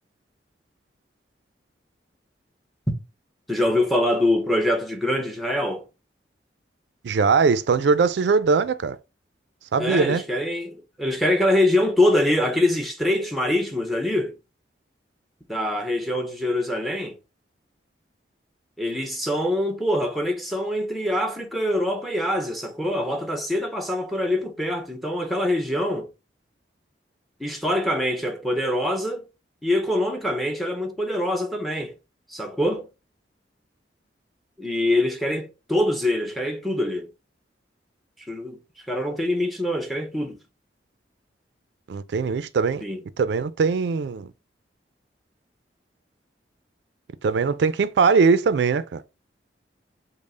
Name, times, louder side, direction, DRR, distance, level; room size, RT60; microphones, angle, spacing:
voice 1, 3.5-5.8 9.8-14.3 15.5-17.2 18.8-26.1 27.4-29.3 29.6-31.9 32.3-32.9 34.6-37.1 38.3-38.6 38.9-40.4 42.8-43.0, left 1 dB, ahead, 0.7 m, -24 dB
voice 2, 7.0-9.0 9.7-10.2 41.9-42.8 43.2-44.3 47.2-49.0, right 5 dB, 75° right, 0.4 m, -21 dB
5.3 x 2.0 x 4.8 m
head